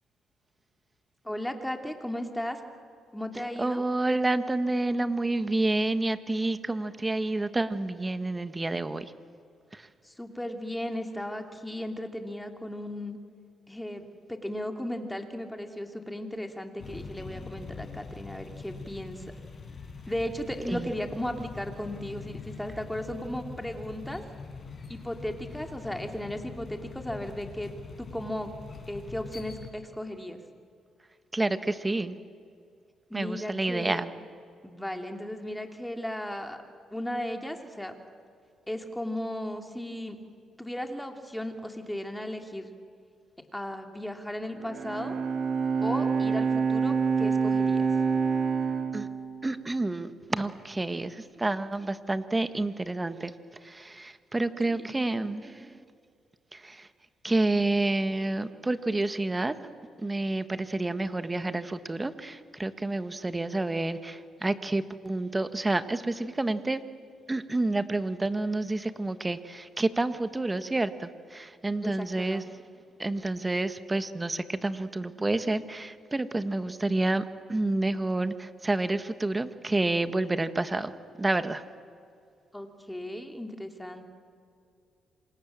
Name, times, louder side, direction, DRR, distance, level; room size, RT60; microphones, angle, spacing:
voice 1, 1.2-2.6 3.1-3.8 10.0-13.2 13.7-19.3 20.1-24.2 24.9-27.7 28.0-28.5 28.9-30.4 33.1-34.1 34.6-36.6 36.9-38.0 38.7-40.2 40.6-42.7 43.5-45.1 45.8-47.9 54.7-54.9 71.8-72.5 82.5-84.1, left 1 dB, 5° left, 4 dB, 3.0 m, -36 dB
voice 2, 3.6-9.1 9.7-9.9 20.7-20.9 31.3-32.2 33.1-34.1 48.9-49.1 49.4-53.3 53.6-55.8 56.5-56.9 57.2-59.5 60.0-66.8 67.3-72.4 73.0-80.9 81.2-81.6, right 2 dB, 15° right, 11 dB, 1.5 m, -29 dB
sound 1, 16.8-29.7, left 4 dB, 40° left, 5.2 m, -43 dB
Bowed string instrument, 44.5-50.0, right 5 dB, 60° right, 4.3 m, -27 dB
27.5 x 26.0 x 7.5 m, 2.3 s
cardioid pair, 90°, 0 cm